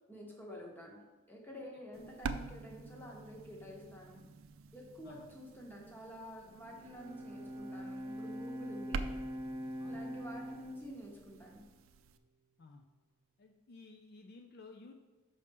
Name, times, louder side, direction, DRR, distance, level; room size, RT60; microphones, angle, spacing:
voice 1, 0.1-4.2 4.7-9.1 9.9-11.7, equal, 10° left, -1 dB, 1.0 m, -49 dB
sound 1, 1.9-12.2, right 4 dB, 75° right, 0.4 m, -47 dB
Bowed string instrument, 6.5-11.9, equal, 25° right, 0.5 m, -44 dB
voice 2, 9.8-10.2 12.6-12.8 13.4-14.9, left 3 dB, 50° left, 4 dB, 0.4 m, -55 dB
6.3 x 5.4 x 3.5 m, 1.3 s
head